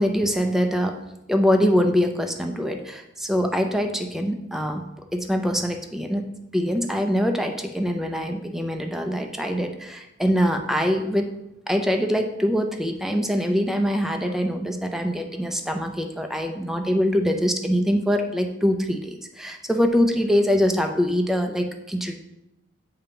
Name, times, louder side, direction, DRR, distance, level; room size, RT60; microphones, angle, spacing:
voice 1, 0.0-4.8 5.1-6.2 6.5-11.3 11.7-22.2, equal, ahead, 4 dB, 0.5 m, -23 dB
8.4 x 2.9 x 5.2 m, 0.90 s
head